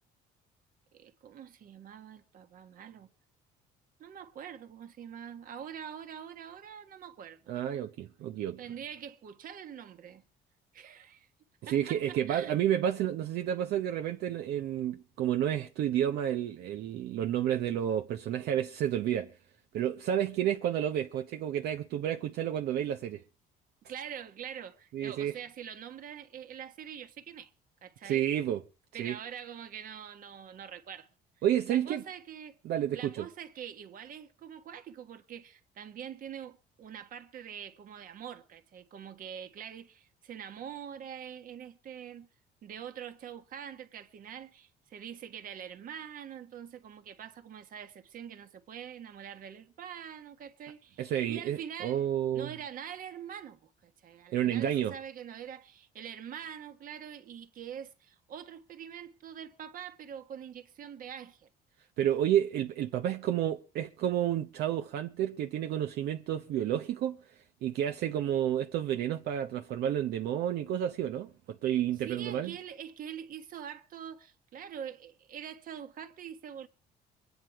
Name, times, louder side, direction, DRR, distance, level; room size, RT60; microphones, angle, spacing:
voice 1, 0.9-3.1 4.0-7.4 8.6-10.2 10.7-11.3 11.7-12.6 23.9-27.5 27.8-28.3 28.9-31.1 31.7-32.6 32.9-42.3 42.6-52.0 52.3-61.5 72.0-76.7, right 8 dB, 55° right, 1.5 m, -44 dB
voice 2, 7.5-8.6 11.6-19.3 19.7-23.2 24.9-25.3 28.0-28.6 29.0-29.2 31.4-32.0 32.6-33.3 51.0-52.5 54.3-55.0 62.0-72.5, right 10 dB, 70° right, 0.9 m, -30 dB
23.0 x 9.6 x 4.7 m
cardioid pair, 110°, 17 cm